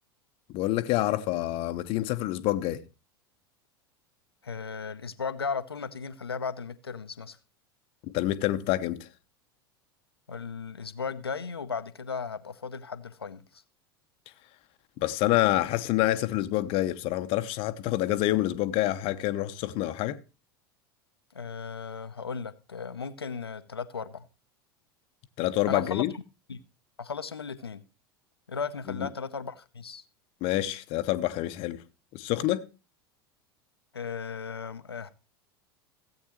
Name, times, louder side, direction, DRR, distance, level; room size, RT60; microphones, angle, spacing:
voice 1, 0.5-2.8 8.0-9.1 15.0-20.2 25.4-26.1 28.9-29.1 30.4-31.8 32.1-32.7, left 15 dB, 50° left, 0.9 m, -27 dB
voice 2, 4.4-7.4 10.3-13.6 21.3-24.3 25.7-26.0 26.5-26.6 27.0-27.8 28.5-30.0 33.9-35.1, left 5 dB, 85° left, 0.8 m, -36 dB
16.0 x 8.4 x 3.0 m
figure-of-eight pair, 85°, 13 cm